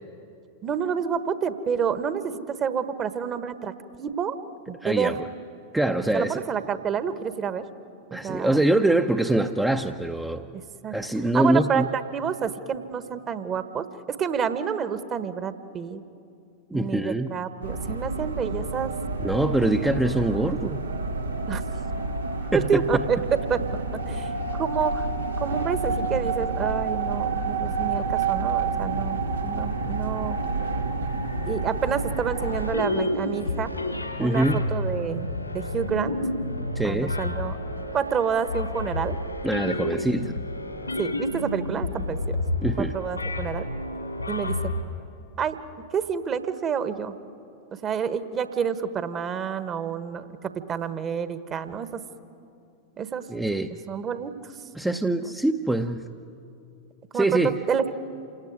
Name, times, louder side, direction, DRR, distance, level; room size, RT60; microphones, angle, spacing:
voice 1, 0.6-4.4 4.7-5.2 6.1-7.6 8.1-8.6 10.8-10.9 11.3-16.0 16.7-18.9 20.3-20.7 21.5-21.6 22.5-23.6 24.1-25.1 25.4-30.4 31.5-33.7 34.2-35.3 35.5-36.1 36.8-37.6 37.9-39.2 41.0-42.4 42.8-43.6 44.3-44.6 45.4-45.6 45.9-47.2 47.8-52.0 53.0-53.3 53.7-54.5 55.2-55.3 57.1-57.3 57.7-57.9, right 7 dB, 25° right, 11 dB, 1.3 m, -28 dB
voice 2, 4.8-5.2 5.7-6.4 8.1-10.4 10.9-11.9 16.7-17.3 19.2-20.9 22.5-22.8 34.2-34.6 36.7-37.2 39.4-40.3 42.6-43.0 53.3-53.7 54.7-56.0 57.1-57.6, right 1 dB, 5° right, 5 dB, 0.8 m, -24 dB
sound 1, 17.6-32.7, right 3 dB, 75° right, 1.3 m, -29 dB
sound 2, 32.4-44.8, left 1 dB, 85° left, 2.7 m, -30 dB
28.0 x 18.0 x 9.7 m, 2.6 s
figure-of-eight pair, 90°, 0 cm